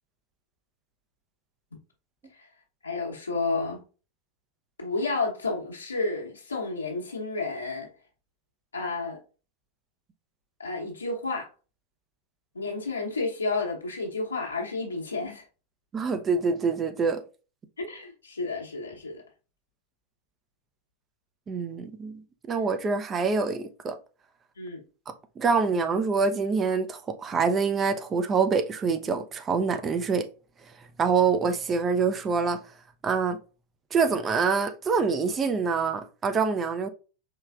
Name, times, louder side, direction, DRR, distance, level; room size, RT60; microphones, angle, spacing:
voice 1, 2.8-3.8 4.8-7.9 8.7-9.2 10.6-11.5 12.5-15.4 17.8-19.2 24.6-24.8, left 3 dB, 75° left, 1.1 m, -31 dB
voice 2, 15.9-17.2 21.5-22.2 22.5-24.0 25.4-30.3 31.0-32.6 33.0-33.4 33.9-36.9, right 5 dB, 20° right, 0.6 m, -25 dB
4.7 x 3.2 x 2.4 m
figure-of-eight pair, 90°, 0 cm